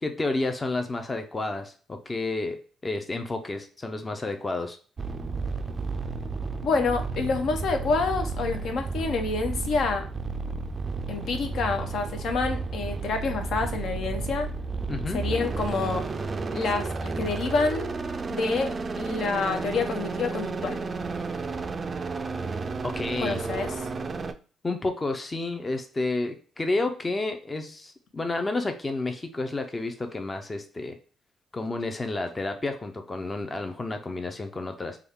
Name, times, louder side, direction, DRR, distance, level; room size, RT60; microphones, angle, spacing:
voice 1, 0.0-4.8 14.9-15.2 22.8-23.4 24.6-31.0 31.5-35.0, left 2 dB, 25° left, 6 dB, 0.5 m, -30 dB
sound 1, 5.0-24.3, right 4 dB, 35° right, 0.3 m, -32 dB
voice 2, 6.6-10.0 11.1-14.5 15.1-16.0 16.5-17.9 18.3-20.8 23.2-23.7, left 4 dB, 70° left, 5 dB, 0.6 m, -28 dB
3.4 x 2.2 x 3.5 m, 0.39 s
cardioid pair, 90°, 0 cm